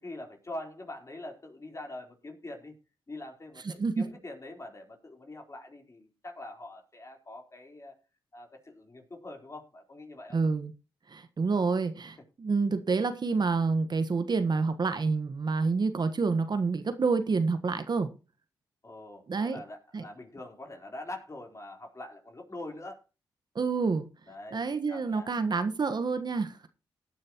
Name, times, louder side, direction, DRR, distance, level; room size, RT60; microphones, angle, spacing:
voice 1, 0.0-2.7 3.1-7.9 8.3-10.4 18.8-23.0 24.3-24.6 24.9-25.3, left 2 dB, 30° left, 4.0 m, -44 dB
voice 2, 3.6-4.0 10.3-10.7 11.1-18.1 19.3-19.6 19.9-20.1 23.5-24.1 24.5-26.7, right 4 dB, 50° right, 1.3 m, -28 dB
17.0 x 9.4 x 3.0 m
supercardioid pair, 50°, 10 cm